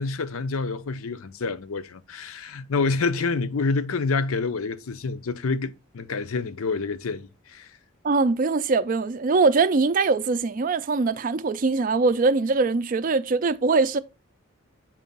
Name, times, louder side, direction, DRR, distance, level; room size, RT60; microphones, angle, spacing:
voice 1, 0.0-7.7, left 4 dB, 80° left, 0.6 m, -27 dB
voice 2, 8.0-14.0, right 4 dB, 40° right, 0.4 m, -22 dB
7.2 x 2.5 x 5.3 m
head